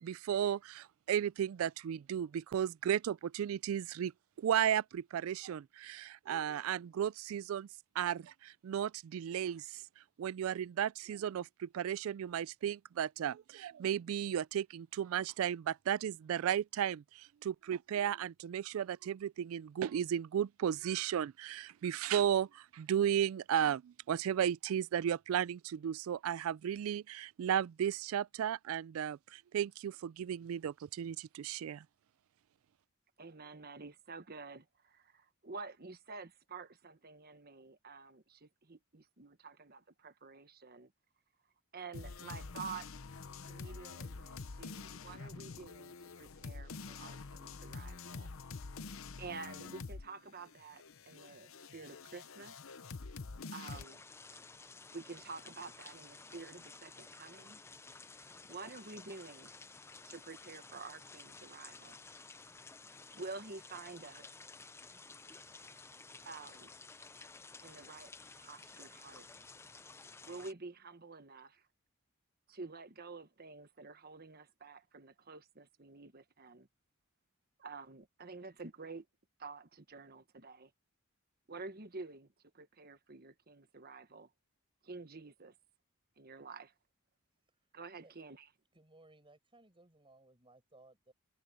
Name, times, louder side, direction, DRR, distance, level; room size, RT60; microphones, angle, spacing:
voice 1, 0.0-4.1 4.4-7.7 8.0-9.8 10.2-31.8, right 9 dB, 70° right, 0.3 m, -34 dB
voice 2, 33.2-40.9 41.7-42.9 43.4-48.3 49.2-52.6 53.5-54.0 54.9-57.6 58.5-59.5 60.1-62.0 63.1-64.3 66.2-66.7 67.6-68.1 68.4-69.3 70.3-71.6 72.5-76.7 77.6-79.0 79.4-80.7 81.5-84.3 84.8-85.5 86.2-86.7 87.7-88.5, right 4 dB, 45° right, 1.3 m, -49 dB
sound 1, 41.9-50.1 50.4-53.8, left 4 dB, 70° left, 0.8 m, -47 dB
sound 2, 53.7-70.5, left 4 dB, 10° left, 0.5 m, -54 dB
voice 3, 88.7-91.1, right 2 dB, 25° right, 5.3 m, -62 dB
head